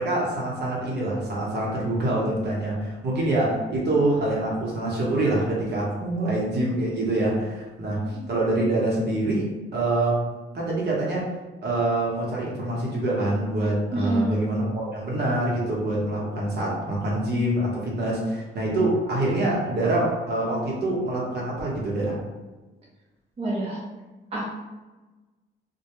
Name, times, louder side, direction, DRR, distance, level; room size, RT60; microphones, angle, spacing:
voice 1, 0.0-10.2 10.5-11.3 11.6-22.2, right 1 dB, 55° right, -4 dB, 0.9 m, -25 dB
voice 2, 13.9-14.6 23.4-23.8 24.3-24.5, right 2 dB, 30° right, -6 dB, 0.7 m, -27 dB
2.2 x 2.2 x 2.9 m, 1.2 s
cardioid pair, 90°, 20 cm